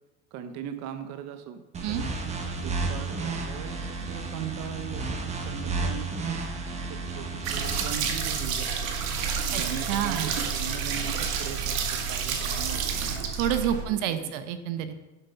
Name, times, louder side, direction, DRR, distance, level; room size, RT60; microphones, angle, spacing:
voice 1, 0.3-2.0 2.6-6.4 6.9-8.9 9.5-13.1 13.6-14.3, right 9 dB, 40° right, 8 dB, 1.0 m, -40 dB
sound 1, 1.7-7.8, right 3 dB, 15° right, 1.0 m, -32 dB
sound 2, 7.4-13.9, right 6 dB, 85° right, 2.0 m, -29 dB
voice 2, 9.9-10.3 13.3-14.9, right 10 dB, 65° right, 9 dB, 1.0 m, -28 dB
11.5 x 7.1 x 5.6 m, 1.1 s
supercardioid pair, 155°, 39 cm